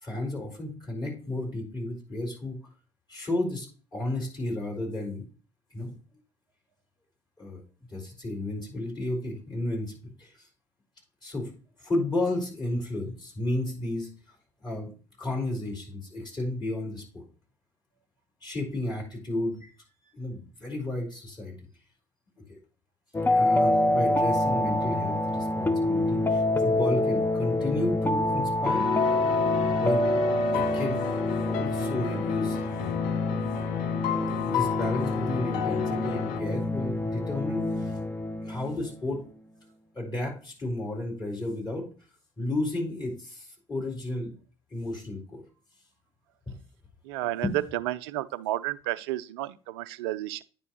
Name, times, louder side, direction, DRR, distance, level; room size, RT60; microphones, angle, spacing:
voice 1, 0.0-2.6 3.1-3.7 3.9-5.2 5.7-6.0 7.4-7.6 7.9-10.5 11.2-11.5 11.8-14.1 14.6-14.9 15.2-17.2 18.4-19.7 20.1-21.5 22.5-22.6 23.3-28.9 29.8-30.0 30.5-33.0 34.5-37.9 38.4-39.2 39.9-41.8 42.4-44.3 44.7-45.4 46.5-46.6 47.4-47.5, left 2 dB, 30° left, 4.5 m, -32 dB
sound 1, 23.1-38.9, left 1 dB, 15° left, 0.6 m, -27 dB
sound 2, 28.6-36.4, left 11 dB, 60° left, 0.6 m, -32 dB
voice 2, 47.0-47.5 47.7-50.4, right 14 dB, 70° right, 0.4 m, -32 dB
9.5 x 5.4 x 3.1 m
figure-of-eight pair, 55°, 14 cm